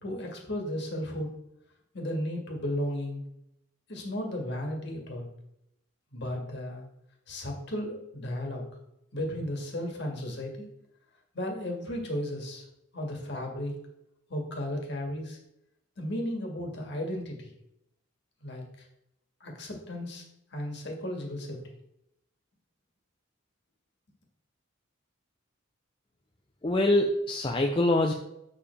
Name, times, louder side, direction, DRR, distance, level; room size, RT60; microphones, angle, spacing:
voice 1, 0.0-1.3 1.9-3.2 3.9-5.3 6.1-6.8 7.3-8.6 9.1-10.7 11.3-12.6 12.9-13.7 14.3-15.4 16.0-17.5 18.4-18.8 19.4-20.2 20.5-21.7, left 1 dB, 55° left, 1 dB, 1.8 m, -34 dB
voice 2, 26.6-28.1, left 1 dB, 25° left, 2 dB, 0.5 m, -24 dB
7.1 x 6.8 x 3.4 m, 0.81 s
head